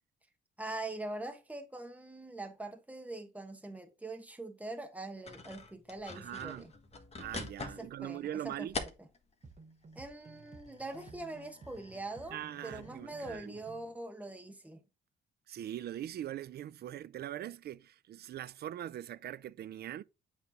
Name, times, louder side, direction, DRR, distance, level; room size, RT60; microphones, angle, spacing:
voice 1, 0.6-6.7 7.8-9.1 9.9-14.8, right 2 dB, 5° right, 1.3 m, -43 dB
sound 1, 5.3-9.4 9.9-13.7, left 3 dB, 30° left, 1.5 m, -46 dB
voice 2, 6.1-6.7 7.2-8.8 12.3-13.5 15.5-20.0, right 11 dB, 55° right, 0.4 m, -41 dB
sound 2, 9.4-14.0, right 4 dB, 35° right, 1.2 m, -55 dB
8.2 x 3.3 x 3.7 m
cardioid pair, 90°, 20 cm